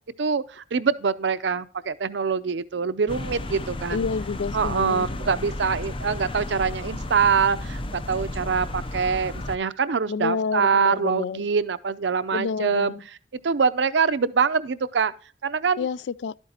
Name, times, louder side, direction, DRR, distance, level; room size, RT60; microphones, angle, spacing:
voice 1, 0.2-4.1 4.5-12.9 13.3-15.1 15.4-15.9, right 5 dB, 80° right, 0.6 m, -24 dB
sound 1, 3.1-9.6, left 1 dB, 30° left, 0.6 m, -33 dB
voice 2, 3.9-5.2 10.1-11.5 12.3-13.0 15.8-16.3, left 5 dB, 70° left, 0.3 m, -29 dB
12.0 x 8.8 x 2.9 m
head